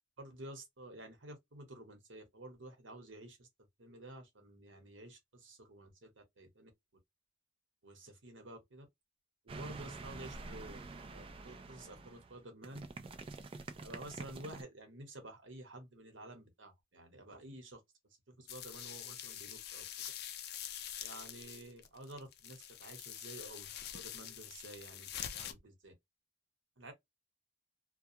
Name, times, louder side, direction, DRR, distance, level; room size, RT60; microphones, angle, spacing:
voice 1, 0.2-3.5 3.8-6.7 7.8-8.9 9.4-10.8 11.1-12.8 13.8-17.8 18.3-19.8 21.0-25.9 26.8-26.9, right 1 dB, 80° right, 1.0 m, -51 dB
sound 1, 9.5-14.6, right 3 dB, 30° right, 0.3 m, -47 dB
sound 2, 18.5-25.5, left 10 dB, 55° left, 0.4 m, -45 dB
2.3 x 2.3 x 2.7 m
head